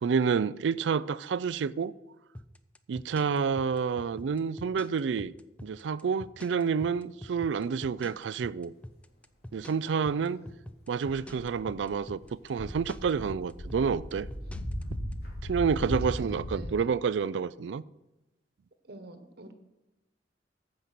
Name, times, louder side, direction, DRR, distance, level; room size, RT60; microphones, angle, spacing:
voice 1, 0.0-1.9 2.9-5.3 5.6-8.7 9.5-10.4 10.9-12.2 12.5-14.3 15.5-17.8, right 6 dB, 80° right, 0.4 m, -29 dB
sound 1, 2.3-15.1, left 1 dB, 5° left, 0.4 m, -45 dB
voice 2, 9.8-10.6 14.4-14.5 16.0-16.7 18.8-19.5, right 1 dB, 60° right, 1.2 m, -48 dB
sound 2, 11.0-12.1 12.5-16.7, equal, 60° left, 2.7 m, -37 dB
14.5 x 5.4 x 6.0 m
head